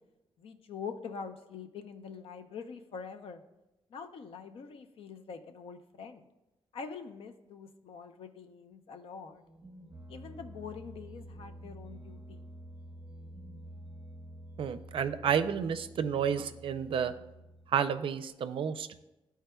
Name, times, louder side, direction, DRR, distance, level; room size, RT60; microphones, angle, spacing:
voice 1, 0.4-3.4 3.9-6.3 6.7-9.4 10.1-12.4, left 5 dB, 75° left, 8 dB, 0.6 m, -44 dB
sound 1, 9.4-18.2, right 1 dB, 20° right, 0.7 m, -49 dB
voice 2, 14.6-17.1 17.7-18.9, right 7 dB, 70° right, 10 dB, 0.4 m, -30 dB
13.0 x 4.6 x 2.3 m, 0.98 s
wide cardioid pair, 145°, 9 cm